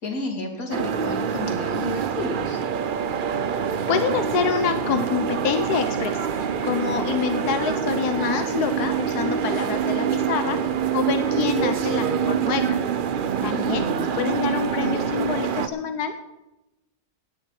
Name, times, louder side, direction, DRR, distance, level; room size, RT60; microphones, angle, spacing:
voice 1, 0.0-2.6 13.4-14.3, left 2 dB, 65° left, 0 dB, 3.0 m, -32 dB
sound 1, 0.7-15.7, right 7 dB, 55° right, 0.5 m, -25 dB
voice 2, 3.9-10.6 10.9-12.8 13.4-13.8 14.2-16.2, left 7 dB, 80° left, 8 dB, 1.4 m, -26 dB
17.5 x 9.6 x 4.9 m, 0.95 s
omnidirectional pair, 1.6 m